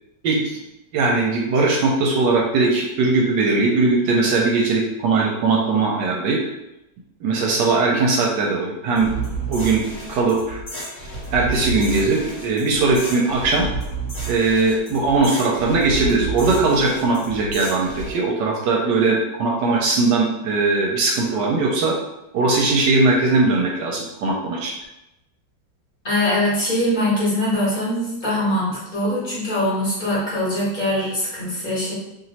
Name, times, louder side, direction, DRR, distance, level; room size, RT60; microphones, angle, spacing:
voice 1, 0.9-6.4 7.2-9.1 9.5-10.6 11.3-13.7 14.3-22.0 22.3-24.7, right 3 dB, 75° right, -1 dB, 1.2 m, -19 dB
sound 1, 9.0-18.1, right 3 dB, 45° left, 1.4 m, -31 dB
voice 2, 26.0-31.9, left 1 dB, 25° left, -8 dB, 1.6 m, -22 dB
3.0 x 2.9 x 4.0 m, 0.92 s
omnidirectional pair, 2.0 m